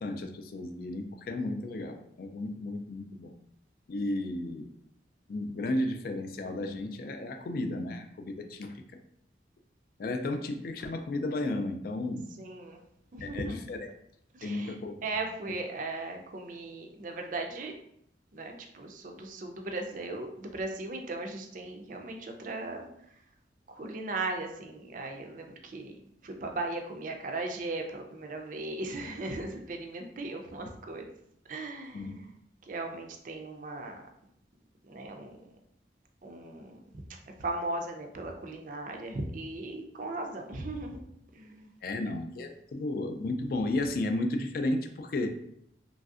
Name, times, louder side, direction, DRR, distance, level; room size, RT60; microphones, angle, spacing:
voice 1, 0.0-3.3 3.9-4.7 5.3-8.7 10.0-12.3 13.2-13.9 14.4-15.2 31.9-32.2 41.8-45.4, left 2 dB, 55° left, 6 dB, 0.3 m, -33 dB
voice 2, 12.4-12.8 13.1-13.6 14.3-17.7 18.3-22.9 23.7-31.1 31.5-32.3 32.6-34.0 34.9-35.6 36.2-37.0 37.4-41.0 41.3-41.7, right 2 dB, 45° right, 3 dB, 0.4 m, -37 dB
3.1 x 2.6 x 2.4 m, 0.73 s
head